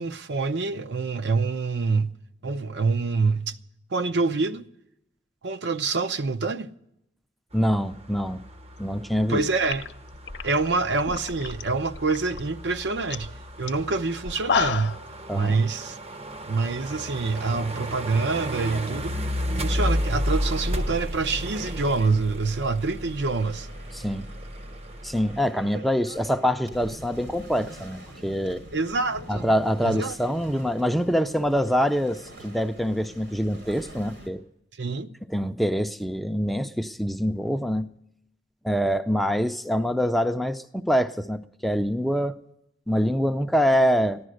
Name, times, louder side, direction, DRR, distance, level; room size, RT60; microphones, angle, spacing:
voice 1, 0.0-2.1 2.4-3.5 3.9-4.7 5.4-6.7 9.2-9.8 10.4-13.3 13.6-15.0 15.3-16.0 16.5-19.1 19.6-23.7 28.7-29.5 29.8-30.2 34.8-35.1, right 4 dB, 70° right, 0.6 m, -26 dB
voice 2, 7.5-8.4 8.8-9.4 15.3-15.6 23.9-24.3 25.0-28.6 29.3-34.4 35.3-37.9 38.6-42.3 42.9-44.2, equal, ahead, 0.4 m, -25 dB
sound 1, 7.5-25.4, equal, 35° right, 0.7 m, -33 dB
sound 2, 9.2-9.3 9.6-11.6 11.9-12.4 12.8-12.9 13.1-13.3 13.7-13.8 14.2-15.0, left 6 dB, 70° left, 0.7 m, -29 dB
sound 3, 18.6-34.3, right 1 dB, 85° right, 3.4 m, -46 dB
15.0 x 11.0 x 6.4 m
head